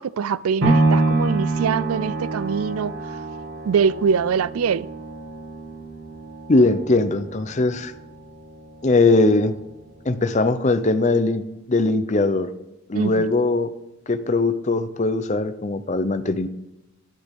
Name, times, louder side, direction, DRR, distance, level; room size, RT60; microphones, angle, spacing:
voice 1, 0.0-3.2 3.6-4.9 12.9-13.3, right 6 dB, 90° right, 0.4 m, -23 dB
sound 1, 0.6-8.7 9.2-9.3, right 2 dB, 65° right, 2.2 m, -26 dB
voice 2, 6.5-7.9 8.8-9.6 10.0-12.5 12.9-13.7 14.1-16.5, left 2 dB, 35° left, 0.6 m, -20 dB
10.5 x 8.2 x 3.6 m
head